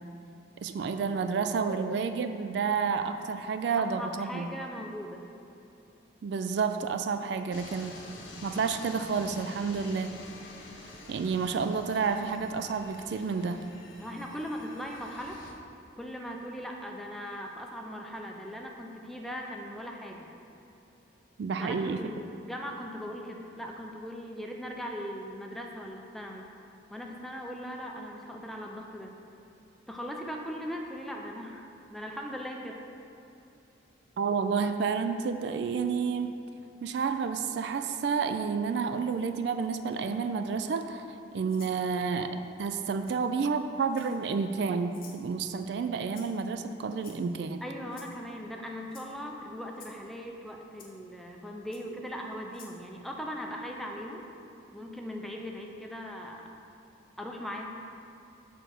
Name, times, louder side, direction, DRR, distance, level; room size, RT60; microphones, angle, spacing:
voice 1, 0.6-4.5 6.2-7.9 8.4-10.1 11.1-13.6 21.4-22.1 34.2-36.3 36.8-41.1 41.3-47.6, right 5 dB, 60° right, 8 dB, 0.3 m, -30 dB
voice 2, 3.8-5.2 14.0-15.4 16.0-20.3 21.6-26.5 26.9-29.1 29.9-32.8 47.6-54.3 54.7-56.4 57.2-57.7, equal, ahead, 0 dB, 0.5 m, -39 dB
sound 1, 7.5-15.5, left 2 dB, 85° left, 1.0 m, -48 dB
Rattle (instrument), 41.5-41.8 43.0-43.2 43.9-44.3 44.9-45.2 46.1-46.5 47.0-47.4 47.9-48.2 48.9-49.1 49.7-50.0 50.8-50.9 51.7-51.8 52.5-52.8, left 6 dB, 50° left, 0.9 m, -52 dB
6.7 x 3.8 x 6.3 m, 2.8 s
head